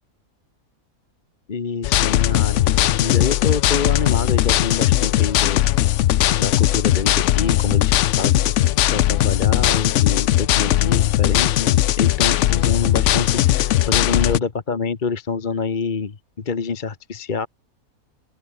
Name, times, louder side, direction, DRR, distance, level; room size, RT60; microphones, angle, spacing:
voice 1, 1.5-5.7 6.4-8.5 8.9-17.5, left 5 dB, 35° left, 1.2 m, -26 dB
sound 1, 1.8-14.4, left 13 dB, 65° left, 0.8 m, -18 dB
open air
omnidirectional pair, 1.6 m